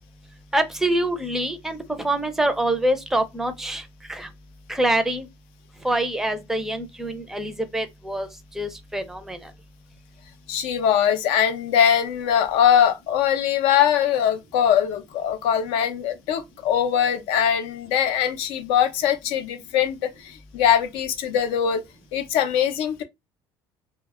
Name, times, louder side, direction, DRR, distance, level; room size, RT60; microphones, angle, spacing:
voice 1, 0.5-3.8 4.1-4.3 4.7-5.3 5.8-8.3 8.6-9.5, right 1 dB, 5° right, 0.4 m, -25 dB
voice 2, 10.5-21.8 22.1-23.0, left 9 dB, 80° left, 0.5 m, -21 dB
2.1 x 2.0 x 3.5 m
cardioid pair, 135°, 10 cm